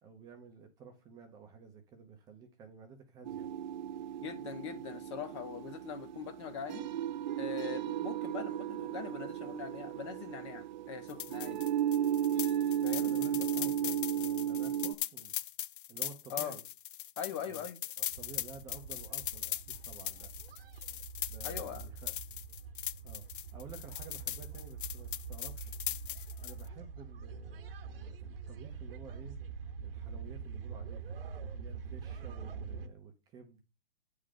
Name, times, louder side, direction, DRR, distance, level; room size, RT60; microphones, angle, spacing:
voice 1, 0.0-3.5 13.0-15.4 15.9-16.7 17.4-17.7 18.0-20.3 21.3-22.1 23.0-23.3 23.5-25.7 26.4-29.4 29.8-31.1 31.5-33.6, right 5 dB, 10° right, 0.8 m, -52 dB
sound 1, 3.3-14.9, right 10 dB, 50° right, 0.5 m, -35 dB
voice 2, 4.2-6.9 7.4-11.6 12.8-13.1 16.3-16.6 17.2-17.8 21.4-21.9, left 8 dB, 30° left, 0.8 m, -42 dB
sound 2, 11.1-26.7, left 12 dB, 55° left, 0.4 m, -40 dB
sound 3, 18.1-32.9, right 5 dB, 65° right, 1.2 m, -45 dB
8.9 x 3.8 x 6.5 m
hypercardioid pair, 165°, 31 cm